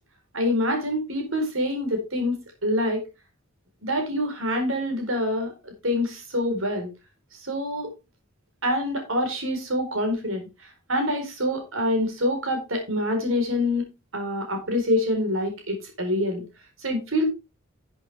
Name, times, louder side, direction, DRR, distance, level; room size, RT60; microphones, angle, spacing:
voice 1, 0.3-3.1 3.8-6.9 7.4-7.9 8.6-13.8 14.1-16.4 16.8-17.3, left 1 dB, 70° right, 4 dB, 4.3 m, -26 dB
12.0 x 7.9 x 3.5 m, 0.24 s
head